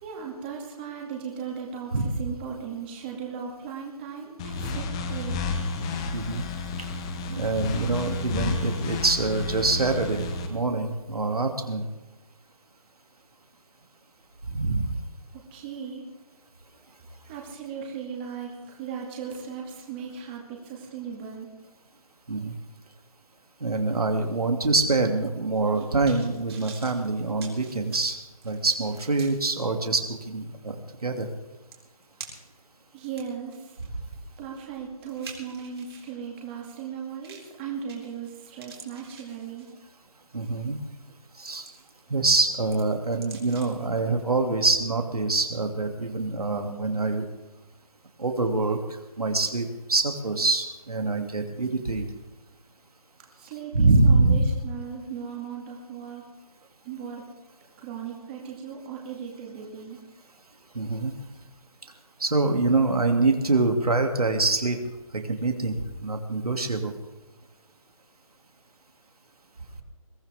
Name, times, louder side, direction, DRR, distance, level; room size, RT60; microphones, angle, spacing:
voice 1, 0.0-5.4 15.3-16.1 17.3-21.5 32.9-33.8 34.4-39.7 53.4-56.2 56.8-57.2 57.8-60.0, right 7 dB, 15° right, -1 dB, 2.3 m, -37 dB
sound 1, 4.4-10.5, left 3 dB, 10° left, 0.6 m, -31 dB
voice 2, 6.1-6.4 7.3-11.8 14.5-14.9 22.3-22.5 23.6-28.2 28.4-30.8 31.0-31.3 40.3-40.8 41.4-41.7 42.1-47.3 48.2-48.8 49.2-52.0 53.7-54.4 60.7-61.1 62.2-64.8 65.1-66.9, right 3 dB, 90° right, 4 dB, 2.6 m, -25 dB
sound 2, 25.5-29.5 30.0-30.1 31.3-31.4 31.7-32.6 33.1-36.2 37.2-37.6 37.9-38.3 38.6-39.9 40.4-40.6 41.1-42.0 42.3-43.9 44.2-44.3, right 5 dB, 45° right, 3.8 m, -47 dB
22.0 x 14.5 x 3.6 m, 1.1 s
figure-of-eight pair, 165°, 19 cm